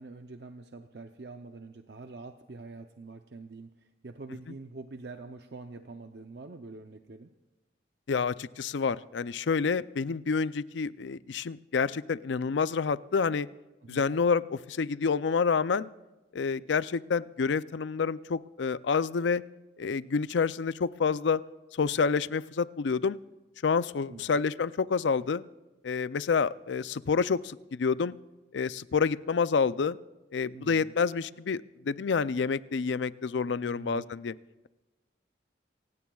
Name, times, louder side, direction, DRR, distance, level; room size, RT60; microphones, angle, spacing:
voice 1, 0.0-7.3 13.8-14.1 24.1-24.4 30.5-30.9 33.6-34.1, right 3 dB, 60° right, 6 dB, 0.7 m, -45 dB
voice 2, 8.1-13.5 13.9-15.9 16.3-19.4 19.8-21.4 21.8-23.2 23.6-25.4 25.8-28.2 28.5-30.0 30.3-34.3, left 5 dB, 80° left, 17 dB, 0.5 m, -28 dB
28.0 x 16.5 x 2.4 m, 1.1 s
head